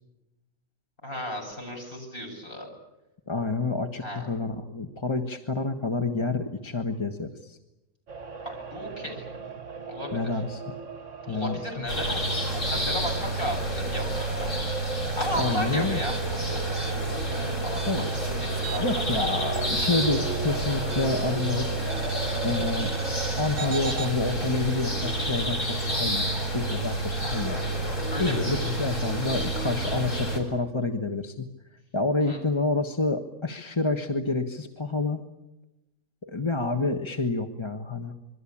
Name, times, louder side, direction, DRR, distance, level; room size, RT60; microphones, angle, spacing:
voice 1, 1.0-2.7 4.0-4.2 8.4-9.3 9.9-10.2 11.2-14.5 15.2-17.0 17.3-19.1 28.1-28.7 32.2-32.4, equal, 40° left, 1 dB, 8.2 m, -35 dB
voice 2, 3.3-7.6 10.1-10.8 11.3-11.9 15.4-16.0 17.9-18.1 18.8-21.8 22.4-22.9 23.4-27.6 28.2-31.5 31.9-35.2 36.2-38.1, left 3 dB, 20° left, 5 dB, 1.3 m, -28 dB
sound 1, 8.1-23.3, right 5 dB, 60° right, 1.9 m, -38 dB
sound 2, 11.9-30.4, right 1 dB, 60° left, 6.6 m, -29 dB
sound 3, 16.0-19.1 19.3-21.4 21.9-24.1, right 3 dB, 30° right, 2.2 m, -38 dB
27.0 x 23.0 x 8.7 m, 0.98 s
omnidirectional pair, 1.5 m